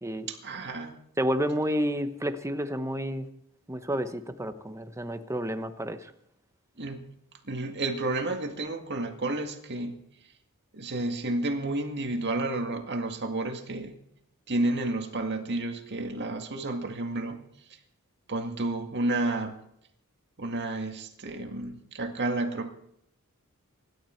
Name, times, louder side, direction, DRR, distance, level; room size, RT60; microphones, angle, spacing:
voice 1, 0.3-1.0 6.8-7.0 7.4-10.0 10.7-13.9 14.5-17.4 18.3-19.6 20.4-22.7, right 2 dB, 50° right, 5 dB, 2.0 m, -31 dB
voice 2, 1.2-3.3 3.7-6.1, equal, 15° right, 9 dB, 1.0 m, -30 dB
25.0 x 12.0 x 4.6 m, 0.77 s
head